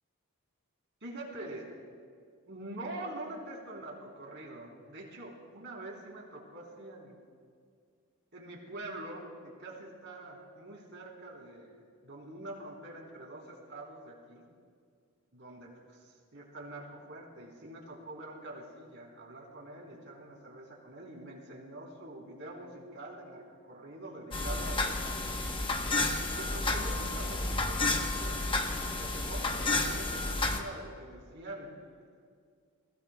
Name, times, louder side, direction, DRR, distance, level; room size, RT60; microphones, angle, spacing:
voice 1, 1.0-1.7 2.5-7.2 8.3-14.5 15.3-25.0 26.2-31.7, right 1 dB, 55° right, -2 dB, 3.5 m, -45 dB
sound 1, 24.3-30.6, left 2 dB, 25° left, 0.9 m, -31 dB
27.0 x 16.5 x 2.2 m, 2.1 s
head